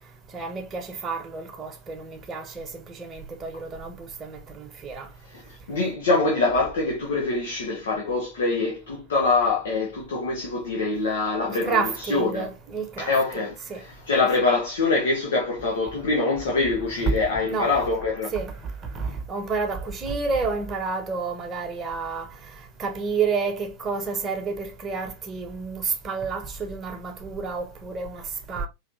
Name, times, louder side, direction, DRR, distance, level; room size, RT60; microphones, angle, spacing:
voice 1, 0.3-5.1 11.5-13.1 13.7-13.8 17.1-17.2 17.4-17.8 18.3-22.3 22.8-28.7, right 4 dB, 20° right, 1.1 m, -30 dB
voice 2, 5.7-12.5 13.0-18.3, left 3 dB, 65° left, 1.2 m, -24 dB
4.7 x 3.3 x 2.6 m
figure-of-eight pair, 90°, 0 cm